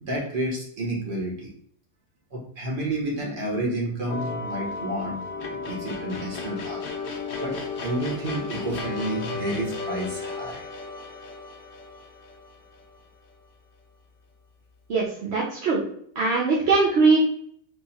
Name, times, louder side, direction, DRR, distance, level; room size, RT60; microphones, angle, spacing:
voice 1, 0.0-1.5 2.3-5.2 5.6-6.8 7.4-10.6, right 1 dB, 35° right, -3 dB, 1.3 m, -30 dB
sound 1, 4.1-13.3, left 4 dB, 60° left, 0.5 m, -34 dB
voice 2, 14.9-15.8 16.2-17.2, right 4 dB, 55° right, -4 dB, 0.8 m, -21 dB
3.6 x 3.2 x 2.8 m, 0.63 s
omnidirectional pair, 1.7 m